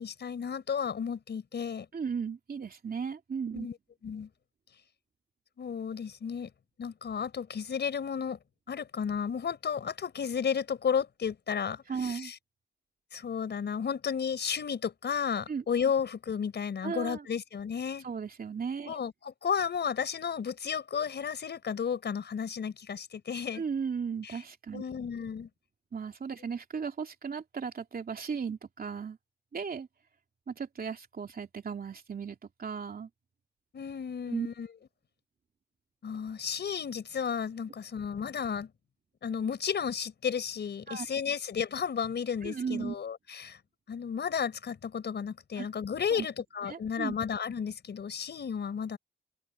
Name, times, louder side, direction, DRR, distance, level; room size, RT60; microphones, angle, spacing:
voice 1, 0.0-1.9 3.5-3.7 4.0-4.3 5.6-6.5 6.8-8.4 8.7-12.4 13.1-18.1 18.9-23.6 24.2-24.4 24.7-25.5 33.7-34.7 36.0-38.7 39.2-43.6 43.9-49.0, left 7 dB, 75° left, 5.5 m, -33 dB
voice 2, 1.9-3.7 11.9-12.3 15.5-15.6 16.8-17.3 18.0-19.0 23.5-24.8 25.9-29.2 29.5-29.9 30.5-33.1 34.3-34.5 40.9-41.1 42.4-42.9 45.6-45.7 46.1-46.3 46.7-47.1, right 6 dB, 55° right, 3.0 m, -36 dB
open air
cardioid pair, 70°, 18 cm